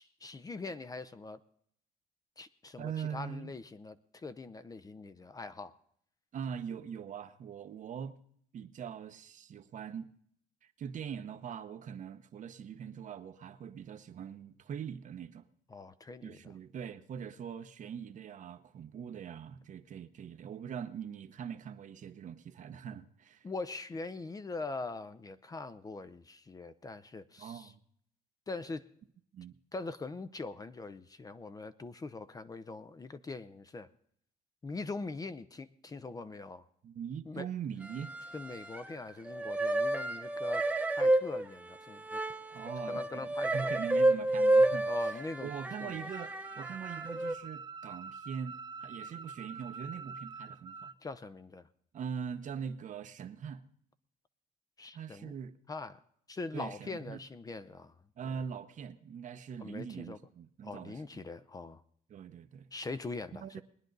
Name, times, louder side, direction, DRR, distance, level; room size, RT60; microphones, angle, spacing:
voice 1, 0.0-1.4 2.4-5.7 15.7-16.4 23.4-27.7 28.5-28.8 29.7-33.9 34.6-36.6 37.3-37.5 38.3-40.6 41.0-42.2 42.9-43.7 44.9-45.5 45.8-46.1 51.0-51.7 54.8-55.3 55.7-56.0 56.3-57.9 59.6-60.2 60.6-61.8 62.7-63.6, left 3 dB, 20° left, 0.6 m, -42 dB
voice 2, 2.8-3.5 6.3-8.2 8.5-10.1 10.6-15.4 16.2-23.5 27.4-27.8 29.3-29.6 36.8-38.1 42.5-50.9 51.9-53.6 54.9-55.5 56.5-57.2 58.2-61.2 62.1-62.7 63.3-63.6, right 7 dB, 50° right, 0.9 m, -42 dB
sound 1, 37.8-39.0 39.3-47.3, right 1 dB, 10° right, 1.0 m, -30 dB
sound 2, 46.1-51.0, right 4 dB, 25° right, 0.5 m, -46 dB
21.0 x 9.9 x 4.0 m
cardioid pair, 110°, 17 cm